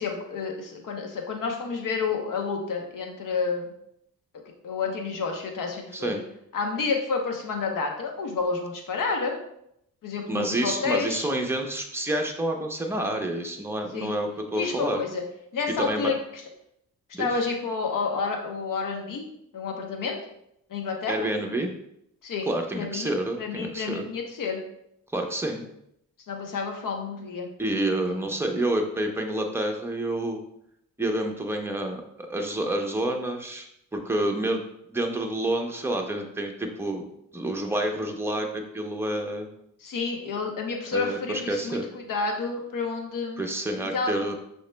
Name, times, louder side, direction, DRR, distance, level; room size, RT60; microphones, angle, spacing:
voice 1, 0.0-3.7 4.6-6.2 6.5-9.4 10.0-11.3 13.9-14.1 14.5-15.2 15.5-16.4 17.2-19.3 19.5-20.2 20.7-21.3 22.2-22.5 22.7-23.1 23.4-24.6 26.3-27.5 28.0-28.2 39.8-43.4 43.9-44.1, left 4 dB, 65° left, 3 dB, 0.9 m, -30 dB
voice 2, 10.3-15.0 15.8-16.1 17.1-17.3 21.1-21.7 22.5-24.1 25.1-25.7 27.6-30.4 31.0-33.7 33.9-34.6 34.9-37.0 37.3-39.5 40.9-41.9 43.4-44.4, right 1 dB, 5° right, 2 dB, 0.7 m, -28 dB
6.2 x 3.0 x 2.2 m, 0.75 s
cardioid pair, 65°, 35 cm